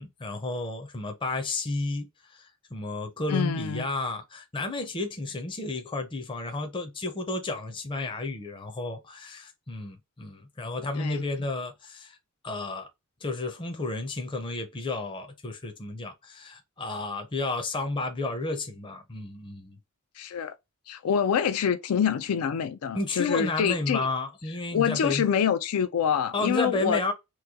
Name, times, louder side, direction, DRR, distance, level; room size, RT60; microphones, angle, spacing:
voice 1, 0.0-12.2 12.4-12.9 13.2-19.8 22.9-25.3 26.3-27.1, left 2 dB, 25° left, 0.5 m, -32 dB
voice 2, 3.3-3.8 11.0-11.2 20.2-20.6 20.9-24.1 24.7-27.0, left 7 dB, 85° left, 0.4 m, -26 dB
3.0 x 2.2 x 3.5 m
head